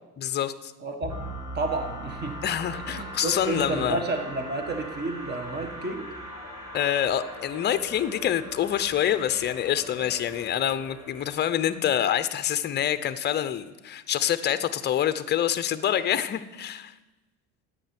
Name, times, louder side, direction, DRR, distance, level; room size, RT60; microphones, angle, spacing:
voice 1, 0.2-0.7 2.4-4.0 6.7-16.9, left 10 dB, 30° left, 13 dB, 0.6 m, -26 dB
voice 2, 0.8-1.2 1.5-2.4 2.9-6.1, right 3 dB, 30° right, 5 dB, 1.5 m, -31 dB
sound 1, 1.0-12.8, equal, 10° right, 2.7 m, -40 dB
10.0 x 8.3 x 9.3 m, 1.1 s
cardioid pair, 150°, 35 cm